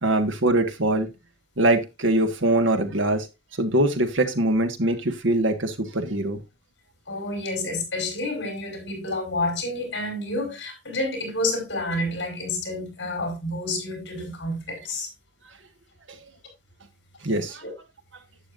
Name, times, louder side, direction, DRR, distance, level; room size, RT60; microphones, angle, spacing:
voice 1, 0.0-1.1 1.6-3.3 3.6-6.4 17.2-17.6, right 1 dB, 90° right, 1.7 m, -22 dB
voice 2, 7.1-15.1 17.6-17.7, left 2 dB, 60° left, 5.1 m, -29 dB
11.5 x 8.6 x 2.6 m
head